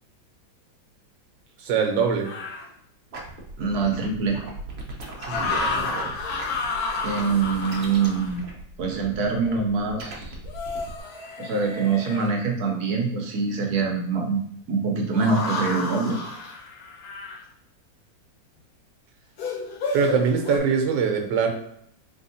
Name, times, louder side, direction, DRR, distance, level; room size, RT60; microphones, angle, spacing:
voice 1, 1.6-2.3 5.3-6.1 19.9-21.5, right 6 dB, 80° right, 4 dB, 1.4 m, -23 dB
sound 1, 2.2-2.7 5.2-8.4 10.5-12.3 15.2-17.4 19.4-20.6, left 3 dB, 65° left, 1.1 m, -31 dB
sound 2, 3.1-11.0, right 2 dB, 50° right, 0.7 m, -39 dB
voice 2, 3.6-4.4 7.0-8.4 8.8-10.4 11.4-14.4 14.7-16.2, right 4 dB, 65° right, 2 dB, 1.1 m, -24 dB
4.1 x 3.5 x 2.7 m, 0.70 s
omnidirectional pair, 2.0 m